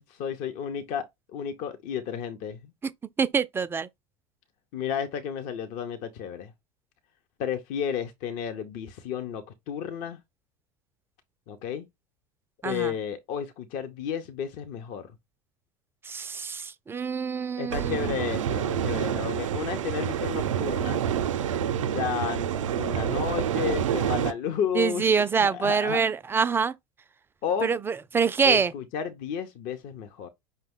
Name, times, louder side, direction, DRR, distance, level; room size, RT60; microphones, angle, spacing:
voice 1, 0.0-2.7 4.7-6.5 7.4-10.2 11.5-11.9 12.6-15.1 17.6-21.0 21.9-25.0 25.4-26.0 27.4-27.7 28.4-30.3, left 8 dB, 55° left, 0.7 m, -32 dB
voice 2, 3.2-3.9 12.6-12.9 16.0-18.2 24.7-26.7 27.6-28.7, right 6 dB, 15° right, 0.3 m, -25 dB
sound 1, 17.7-24.3, right 9 dB, 85° right, 0.5 m, -28 dB
5.3 x 2.1 x 3.5 m
hypercardioid pair, 85°, 16 cm